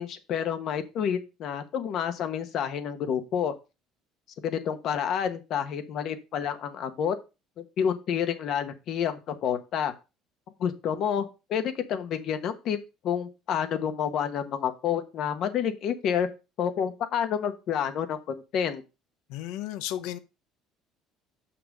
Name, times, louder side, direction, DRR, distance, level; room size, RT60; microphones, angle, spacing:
voice 1, 0.0-3.5 4.4-7.1 7.6-9.9 10.6-12.8 13.0-16.3 16.6-18.8, left 8 dB, 55° left, 1.3 m, -29 dB
voice 2, 19.3-20.2, left 12 dB, 75° left, 0.7 m, -34 dB
6.9 x 5.9 x 5.0 m
cardioid pair, 125°, 0 cm